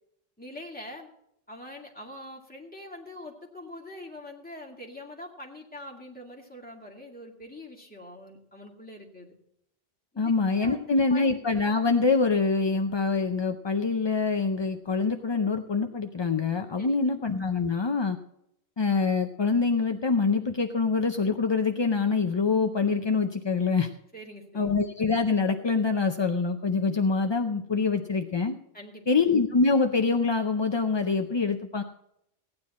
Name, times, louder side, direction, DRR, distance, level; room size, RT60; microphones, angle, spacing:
voice 1, 0.4-1.1 1.5-9.3 10.1-10.3 10.6-11.3 16.8-17.1 24.1-24.8 28.7-29.2, left 1 dB, 10° left, -1 dB, 2.2 m, -44 dB
voice 2, 10.2-18.2 18.8-23.9 24.5-28.6 29.1-31.8, left 4 dB, 35° left, 5 dB, 0.5 m, -25 dB
16.0 x 9.7 x 4.2 m, 0.77 s
omnidirectional pair, 1.1 m